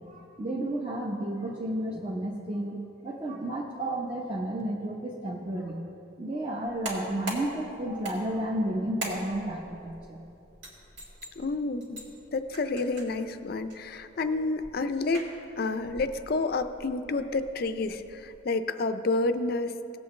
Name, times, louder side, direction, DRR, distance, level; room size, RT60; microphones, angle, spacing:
voice 1, 0.1-2.8 3.0-5.8 6.2-10.2, right 1 dB, 25° right, -3 dB, 0.8 m, -32 dB
sound 1, 6.6-18.4, right 1 dB, 70° right, 2.3 m, -43 dB
voice 2, 11.4-12.0 12.3-15.3 15.6-19.8, left 3 dB, 50° left, 10 dB, 0.4 m, -29 dB
17.5 x 7.9 x 3.2 m, 2.9 s
head